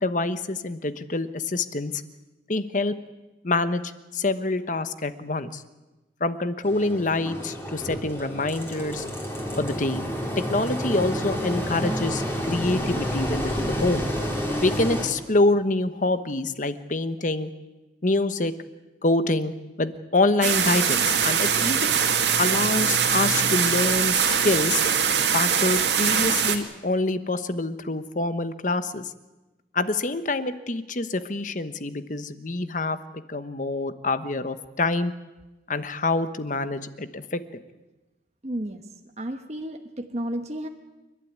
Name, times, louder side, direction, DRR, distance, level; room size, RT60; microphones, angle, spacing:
voice 1, 0.0-2.0 2.5-3.0 3.4-5.6 6.2-9.0 9.6-10.1 10.4-14.0 14.6-17.5 18.0-18.5 19.0-19.5 19.8-21.9 22.4-24.8 25.3-29.1 29.7-33.0 33.3-35.1 35.7-37.4, left 2 dB, 45° left, 12 dB, 1.1 m, -26 dB
Engine, 6.6-15.1, equal, 15° left, 3.9 m, -29 dB
sound 1, 20.4-26.6, right 7 dB, 80° right, 2.3 m, -22 dB
voice 2, 38.4-38.8 39.2-40.7, right 1 dB, 40° right, 5 dB, 1.2 m, -32 dB
29.0 x 12.0 x 9.5 m, 1.1 s
head